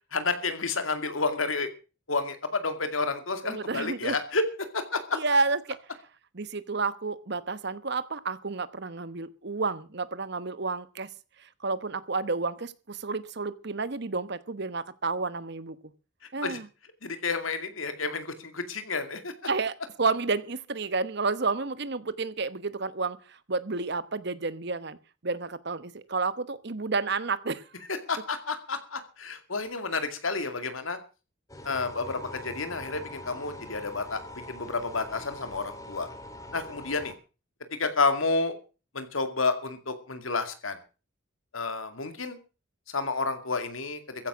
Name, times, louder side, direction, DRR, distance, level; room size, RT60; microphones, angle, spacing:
voice 1, 0.1-1.7 2.1-4.4 4.7-5.2 16.4-16.6 17.0-19.3 28.1-31.0 31.6-34.2 34.5-36.1 36.5-37.1 37.8-38.6 38.9-40.8 41.5-42.4 42.9-44.0, left 3 dB, 85° left, 8 dB, 2.4 m, -30 dB
voice 2, 3.4-4.2 5.1-5.8 6.3-11.1 11.6-15.8 16.3-16.7 19.5-25.0 25.2-27.6, right 4 dB, 55° right, 15 dB, 1.0 m, -30 dB
sound 1, 31.5-37.1, left 1 dB, 15° left, 2.1 m, -43 dB
15.0 x 10.5 x 6.2 m, 0.35 s
head